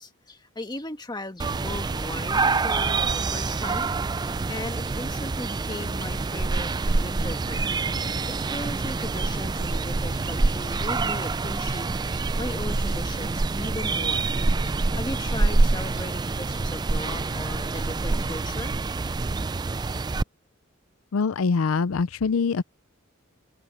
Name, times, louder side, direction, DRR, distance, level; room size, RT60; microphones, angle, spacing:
voice 1, 0.0-3.9 4.3-7.9 8.3-11.9 12.1-14.3 14.6-18.7 19.0-19.1, left 2 dB, 20° left, 1.5 m, -37 dB
sound 1, 1.4-20.2, right 3 dB, 20° right, 0.3 m, -26 dB
sound 2, 3.7-5.0 7.2-7.3 7.6-8.2 9.5-11.2, equal, 5° right, 8.0 m, -43 dB
voice 2, 21.1-22.6, left 5 dB, 80° left, 0.5 m, -24 dB
head